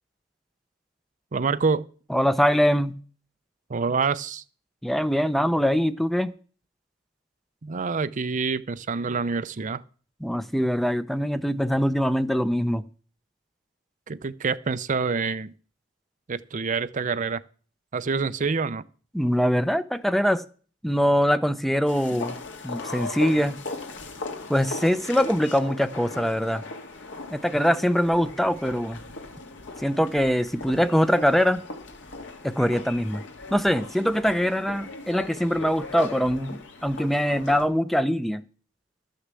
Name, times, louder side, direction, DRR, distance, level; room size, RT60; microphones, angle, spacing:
voice 1, 1.3-1.9 3.7-4.4 7.6-9.8 14.1-15.5 16.3-17.4 17.9-18.8 22.1-22.2, right 4 dB, 40° right, 0.5 m, -26 dB
voice 2, 2.1-3.0 4.8-6.3 10.2-12.8 19.1-20.4 20.8-22.4 22.6-23.6 24.5-26.6 27.3-29.0 29.8-31.6 32.4-33.2 33.5-38.4, equal, ahead, 0.6 m, -23 dB
sound 1, 21.9-37.7, left 3 dB, 70° left, 2.1 m, -38 dB
12.5 x 6.6 x 7.5 m
head